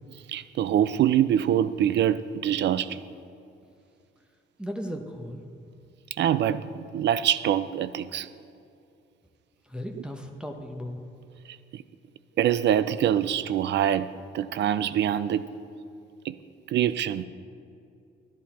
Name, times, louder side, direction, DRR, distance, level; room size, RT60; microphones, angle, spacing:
voice 1, 0.3-3.0 6.2-8.3 11.7-11.8 12.4-15.5 16.2-16.4 16.7-17.2, right 10 dB, 60° right, 0.5 m, -24 dB
voice 2, 4.6-5.4 9.6-11.0, equal, 5° right, 0.9 m, -36 dB
11.5 x 11.0 x 4.3 m
cardioid pair, 90°, 20 cm